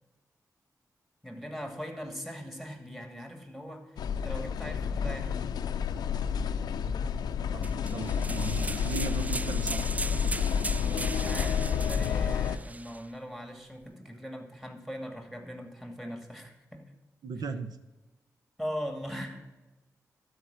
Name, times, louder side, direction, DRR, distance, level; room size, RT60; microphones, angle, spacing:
voice 1, 1.2-5.5 11.0-16.9 18.6-19.5, equal, ahead, 5 dB, 2.5 m, -40 dB
sound 1, 4.0-12.6, left 7 dB, 90° left, 0.5 m, -30 dB
voice 2, 7.2-9.8 17.2-17.8, right 4 dB, 75° right, 10 dB, 0.9 m, -37 dB
sound 2, 7.6-13.0, right 2 dB, 20° right, 0.3 m, -38 dB
12.5 x 5.0 x 7.7 m, 1.1 s
cardioid pair, 45°, 7 cm